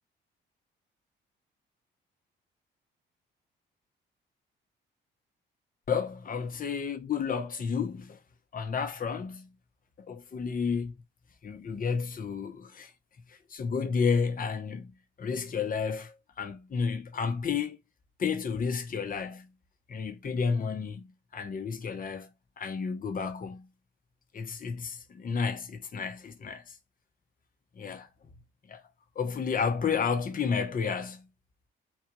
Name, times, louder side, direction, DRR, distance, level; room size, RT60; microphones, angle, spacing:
voice 1, 5.9-8.2 8.5-9.5 10.1-10.9 11.4-12.9 13.3-14.9 15.2-17.8 18.2-19.5 19.9-21.1 21.3-22.3 22.6-23.7 24.3-26.7 27.7-28.1 28.7-28.8 29.1-31.3, left 5 dB, 45° left, 1.0 m, -31 dB
4.3 x 2.4 x 4.6 m
cardioid pair, 90°, 20 cm